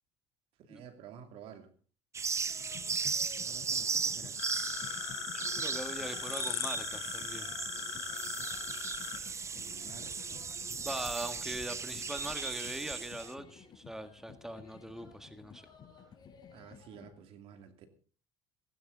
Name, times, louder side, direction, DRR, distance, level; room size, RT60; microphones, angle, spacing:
voice 1, 0.7-1.7 3.3-4.4 9.5-10.7 16.5-17.9, right 8 dB, 70° right, 8 dB, 2.6 m, -52 dB
sound 1, 2.1-13.3, right 5 dB, 30° right, 0.9 m, -37 dB
sound 2, 2.5-17.1, left 7 dB, 45° left, 5.2 m, -54 dB
sound 3, 4.4-9.2, left 13 dB, 75° left, 2.5 m, -40 dB
voice 2, 5.3-7.6 10.8-15.7, right 1 dB, 5° right, 9 dB, 1.6 m, -41 dB
16.5 x 15.5 x 3.9 m, 0.38 s
supercardioid pair, 90°, 10 cm